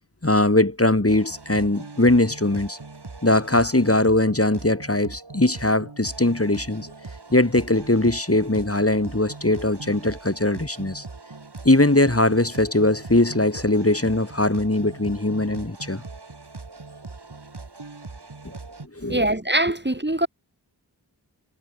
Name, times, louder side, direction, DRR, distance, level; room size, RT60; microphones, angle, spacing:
voice 1, 0.2-2.8 3.2-6.9 7.3-11.0 11.6-16.0 19.0-19.2, left 2 dB, 35° left, 4.3 m, -20 dB
sound 1, 1.1-18.9, right 3 dB, 70° right, 3.8 m, -41 dB
voice 2, 19.1-20.3, right 1 dB, 25° right, 3.1 m, -22 dB
wide cardioid pair, 45°, 42 cm